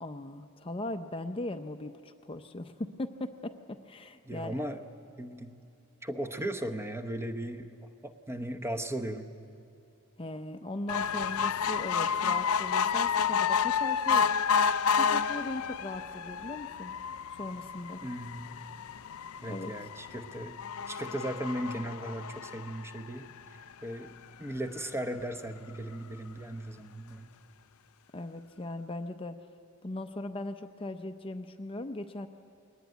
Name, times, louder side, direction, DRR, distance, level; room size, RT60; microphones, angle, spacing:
voice 1, 0.0-4.5 10.2-14.3 14.9-16.9 17.4-18.0 19.5-19.7 28.1-29.4 29.8-32.3, left 2 dB, 25° left, 7 dB, 0.6 m, -39 dB
voice 2, 4.2-4.8 5.2-5.6 6.0-7.7 8.0-9.3 18.0-18.5 19.4-20.6 20.9-23.3 23.8-24.1 24.4-27.3, right 1 dB, 10° right, 7 dB, 0.8 m, -37 dB
sound 1, 10.9-23.5 24.1-24.2 24.4-24.5 24.8-24.9, left 6 dB, 75° left, 0.4 m, -30 dB
21.5 x 18.5 x 9.4 m, 2.6 s
head